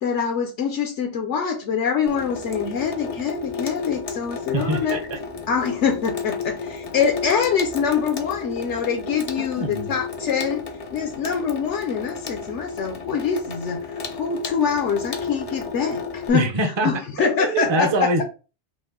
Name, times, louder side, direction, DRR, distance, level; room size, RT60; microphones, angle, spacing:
voice 1, 0.0-5.0 5.5-10.6 10.9-16.5 16.8-18.2, left 6 dB, 75° left, 1.0 m, -25 dB
Water tap faucet / Sink (filling or washing), 2.1-16.3, left 5 dB, 45° left, 0.5 m, -32 dB
voice 2, 4.5-5.2 9.6-9.9 16.3-18.2, right 1 dB, 30° right, 0.6 m, -24 dB
5.1 x 2.0 x 3.8 m
omnidirectional pair, 1.2 m